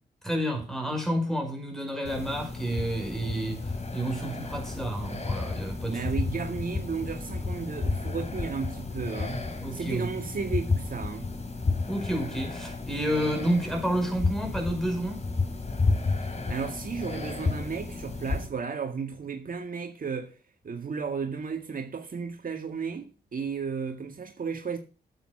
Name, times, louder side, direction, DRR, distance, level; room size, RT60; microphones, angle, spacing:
voice 1, 0.2-6.0 9.6-10.3 11.9-15.2, right 1 dB, ahead, 5.8 m, -30 dB
sound 1, 2.0-18.5, left 3 dB, 40° left, 3.9 m, -32 dB
voice 2, 5.9-9.4 9.7-11.3 16.1-20.4 20.6-24.8, right 5 dB, 50° right, 2.0 m, -34 dB
9.2 x 8.7 x 6.1 m
cardioid pair, 65°, 18 cm